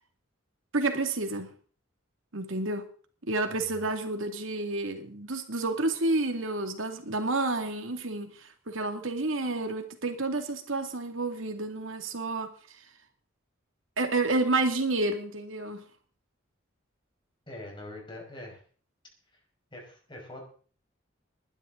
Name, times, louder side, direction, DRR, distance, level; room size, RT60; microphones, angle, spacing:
voice 1, 0.7-1.5 2.3-2.9 3.2-12.9 14.0-15.8, right 2 dB, 85° right, 2.3 m, -30 dB
voice 2, 3.5-3.9 17.5-18.6 19.3-19.4 19.7-20.4, left 1 dB, 25° left, 5.4 m, -44 dB
20.5 x 11.5 x 3.9 m
head